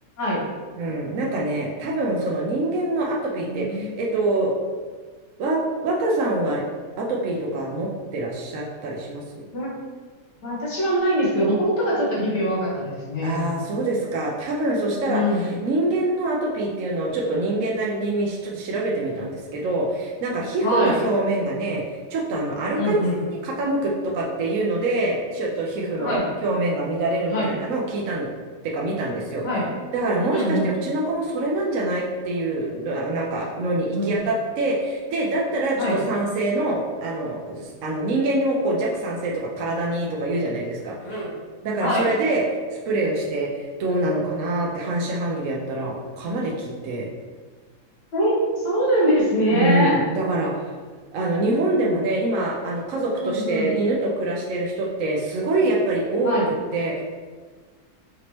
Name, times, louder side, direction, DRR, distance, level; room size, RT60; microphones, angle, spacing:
voice 1, 0.8-4.6 5.4-6.6 7.0-9.4 13.2-21.8 22.1-23.0 23.3-28.3 28.6-29.4 29.9-41.2 41.6-42.4 42.9-47.1 49.5-50.5 51.1-56.4 56.7-57.0, right 2 dB, 65° right, -3 dB, 0.9 m, -25 dB
voice 2, 3.5-4.0 9.5-9.7 10.4-13.5 15.1-15.4 20.6-21.0 22.8-23.2 26.0-26.3 27.3-27.5 29.4-29.7 30.3-30.7 33.9-34.1 35.8-36.0 41.0-41.3 41.8-42.1 48.1-50.0 53.2-53.7 56.2-56.5, equal, 85° left, -6 dB, 1.9 m, -23 dB
5.1 x 3.0 x 2.9 m, 1.5 s
omnidirectional pair, 1.8 m